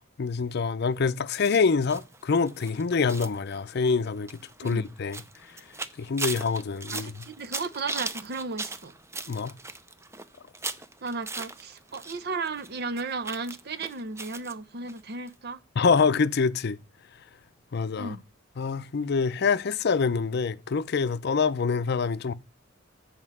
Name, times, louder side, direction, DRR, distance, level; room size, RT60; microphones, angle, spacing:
voice 1, 0.2-5.2 6.0-7.2 9.3-9.5 15.8-16.8 17.7-18.2 18.6-22.3, left 5 dB, 55° left, 0.5 m, -26 dB
sound 1, 1.3-12.2 12.4-14.5 14.9-15.0 15.3-15.4, right 3 dB, 15° right, 0.5 m, -38 dB
voice 2, 6.9-8.9 11.0-15.6 18.0-18.2, right 3 dB, 55° right, 0.7 m, -35 dB
7.8 x 4.4 x 6.1 m
head